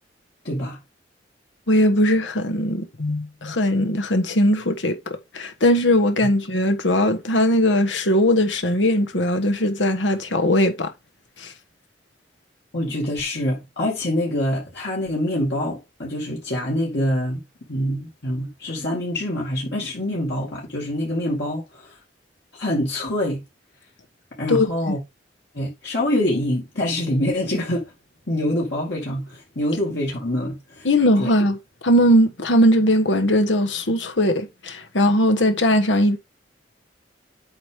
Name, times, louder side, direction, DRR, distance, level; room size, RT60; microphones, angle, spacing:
voice 1, 0.4-0.8 12.7-17.4 17.7-21.9 22.6-23.4 24.4-25.0 25.5-27.9 28.3-30.9 31.2-31.3, left 1 dB, 65° left, 2.3 m, -25 dB
voice 2, 1.7-5.0 5.3-10.9 24.5-25.0 30.8-31.6 31.8-36.2, equal, 90° left, 1.4 m, -19 dB
8.1 x 4.9 x 3.6 m
head